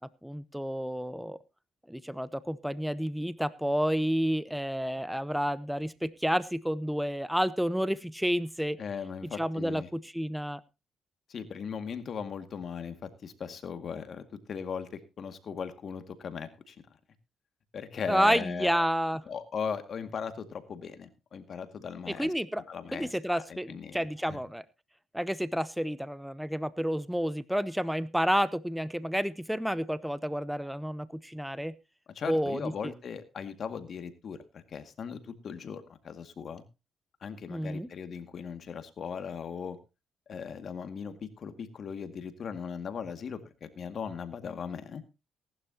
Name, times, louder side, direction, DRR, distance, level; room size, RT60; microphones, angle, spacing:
voice 1, 0.2-1.4 1.9-8.8 9.4-10.6 18.1-19.2 22.2-22.6 22.9-24.6 25.1-31.7 32.3-32.7 37.5-37.9, equal, ahead, 17 dB, 0.8 m, -30 dB
voice 2, 8.8-9.9 11.3-14.2 14.5-16.8 17.7-18.9 19.3-24.4 32.1-36.6 37.2-39.8 40.3-45.0, left 6 dB, 55° left, 9 dB, 2.1 m, -38 dB
18.5 x 11.5 x 2.9 m, 0.28 s
cardioid pair, 90°, 0 cm